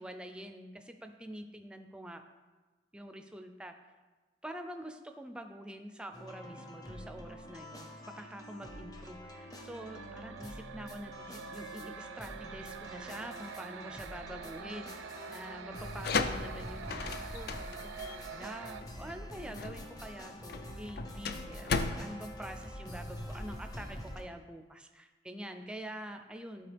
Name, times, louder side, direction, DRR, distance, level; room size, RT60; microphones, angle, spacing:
voice 1, 0.0-2.2 2.9-3.7 4.4-26.7, right 1 dB, 5° right, 6 dB, 0.4 m, -46 dB
sound 1, 6.1-24.2, equal, 20° left, 0.7 m, -46 dB
sound 2, 9.3-18.8, right 7 dB, 80° right, 0.3 m, -46 dB
sound 3, 15.8-23.4, left 4 dB, 55° left, 0.4 m, -37 dB
11.5 x 4.5 x 3.4 m, 1.3 s
head